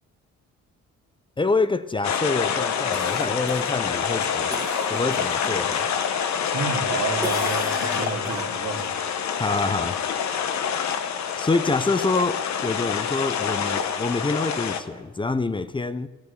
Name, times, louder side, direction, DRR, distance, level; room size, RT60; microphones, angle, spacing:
voice 1, 1.4-4.5 4.9-5.9 9.4-10.0 11.4-16.1, left 3 dB, 15° left, 0.6 m, -26 dB
sound 1, 2.0-14.8, left 7 dB, 65° left, 1.1 m, -26 dB
Cough, 2.9-5.9 6.3-6.9 7.2-8.9 13.3-13.4, right 2 dB, 10° right, 1.7 m, -36 dB
voice 2, 6.5-8.9, right 5 dB, 60° right, 2.5 m, -30 dB
14.5 x 9.6 x 8.3 m
cardioid pair, 90°, 30 cm